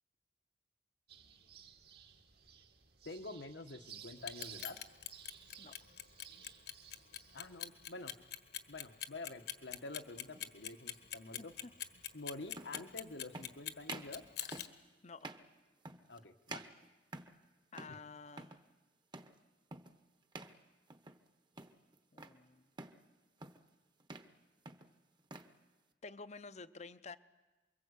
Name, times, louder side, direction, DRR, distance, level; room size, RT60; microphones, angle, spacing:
sound 1, 1.1-7.6, right 8 dB, 65° right, 2.2 m, -57 dB
voice 1, 3.0-4.8 7.3-8.1 8.7-11.5 12.1-14.2 16.1-16.6 17.9-18.0, left 2 dB, 80° left, 6 dB, 1.5 m, -48 dB
Clock, 4.2-14.7, left 11 dB, 65° left, 1.5 m, -43 dB
sound 2, 10.3-10.5 11.8-11.9 12.5-12.9 13.3-13.5 13.8-14.2 14.5-14.8 15.2-15.5 15.8-16.2 16.5-17.4 17.7-18.0 18.3-18.6 19.1-19.4 19.7-20.0 20.3-20.6 20.9-21.3 21.6-22.4 22.8-23.0 23.4-23.7 24.0-24.3 24.6-25.5, right 2 dB, 25° right, 1.2 m, -49 dB
voice 2, 11.4-11.7 15.0-15.4 16.2-16.3 17.7-18.6 22.1-22.6 26.0-27.2, left 4 dB, 40° left, 13 dB, 0.8 m, -51 dB
29.0 x 22.5 x 8.4 m, 1.2 s
head